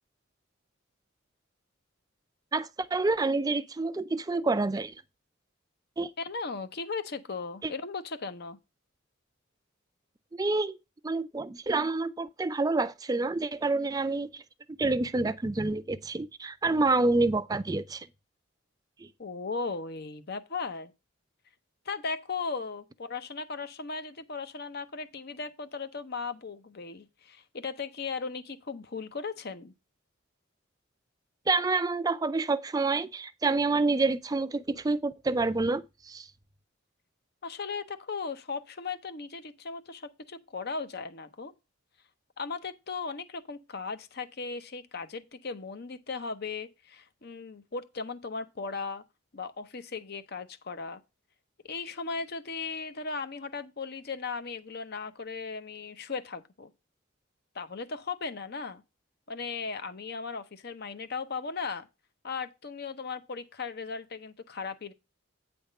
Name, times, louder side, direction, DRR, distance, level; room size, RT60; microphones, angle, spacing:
voice 1, 2.5-4.9 6.0-6.1 7.6-7.7 10.3-10.8 11.0-14.4 14.7-18.1 19.0-19.1 31.5-36.3, right 3 dB, 20° right, 0.4 m, -28 dB
voice 2, 6.2-8.6 19.2-20.9 21.9-29.7 37.4-41.5 42.4-49.0 49.3-51.0 51.6-56.7 57.5-58.8 59.3-61.9 62.2-64.9, left 4 dB, 50° left, 0.7 m, -37 dB
8.9 x 3.5 x 6.5 m
head